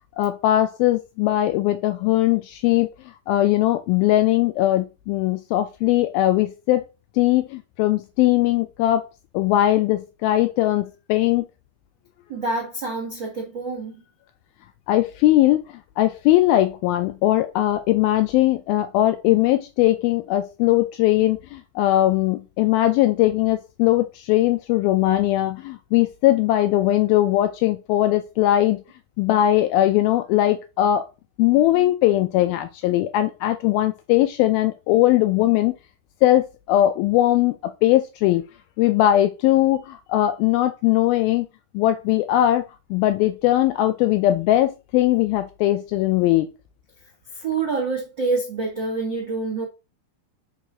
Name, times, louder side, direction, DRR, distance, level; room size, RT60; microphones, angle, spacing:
voice 1, 0.2-2.9 3.3-6.9 7.2-9.1 9.3-11.5 14.9-28.8 29.2-31.1 31.4-35.7 36.2-37.6 37.8-38.4 38.8-41.5 41.7-42.6 42.9-46.5, left 14 dB, 85° left, 2.1 m, -20 dB
voice 2, 12.3-13.9 47.3-49.7, right 3 dB, 45° right, 1.6 m, -26 dB
5.5 x 4.8 x 5.1 m
omnidirectional pair, 4.8 m